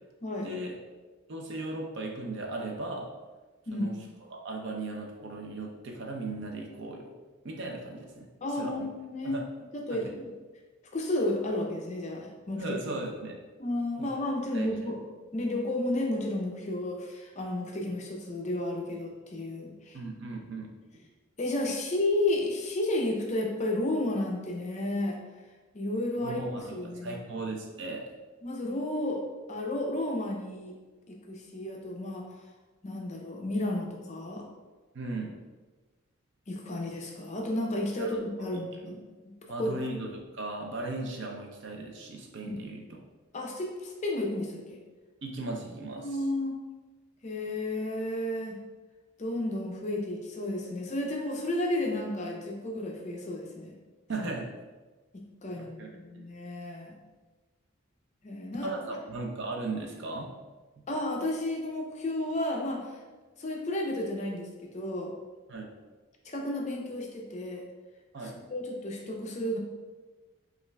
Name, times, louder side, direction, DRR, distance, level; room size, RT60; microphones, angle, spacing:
voice 1, 0.4-0.8 1.3-3.1 3.7-4.0 4.3-7.1 7.4-8.9 9.2-9.4 9.9-10.0 12.6-13.4 14.0-14.1 14.5-14.9 19.9-20.7 26.2-28.1 34.9-35.4 38.0-38.2 38.5-38.6 39.5-42.8 45.2-46.2 54.1-54.5 55.8-55.9 56.1-56.3 58.6-60.3 65.5-65.6 68.1-68.4, right 2 dB, 55° right, 0 dB, 0.5 m, -37 dB
voice 2, 8.4-9.4 9.7-10.3 10.9-12.6 13.6-15.0 15.3-20.0 21.4-25.2 25.7-27.2 28.4-29.2 29.5-30.8 31.3-32.3 32.8-34.5 36.5-39.3 39.6-39.7 42.5-42.6 43.3-44.8 46.0-46.6 47.2-48.6 49.2-53.7 55.1-57.0 58.2-59.0 60.9-63.0 63.4-65.1 66.2-67.6 68.3-69.6, left 1 dB, 30° left, 0 dB, 0.4 m, -32 dB
5.3 x 2.4 x 2.2 m, 1.3 s
head